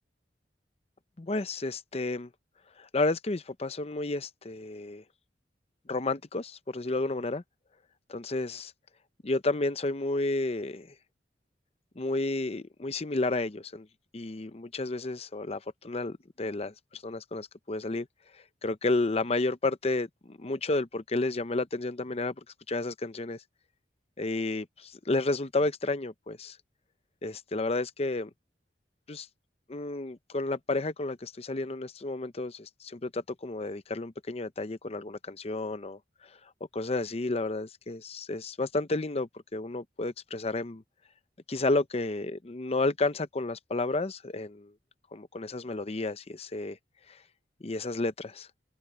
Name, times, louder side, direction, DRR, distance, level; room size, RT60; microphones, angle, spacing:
voice 1, 1.2-2.3 2.8-5.0 5.9-7.4 8.1-8.7 9.2-10.9 12.0-13.9 14.1-18.1 18.3-23.4 24.2-26.6 27.2-28.3 29.1-29.3 29.7-36.4 36.7-40.8 41.5-44.7 45.1-46.8 47.1-47.2 47.6-48.5, left 2 dB, 35° left, 0.7 m, -31 dB
open air
head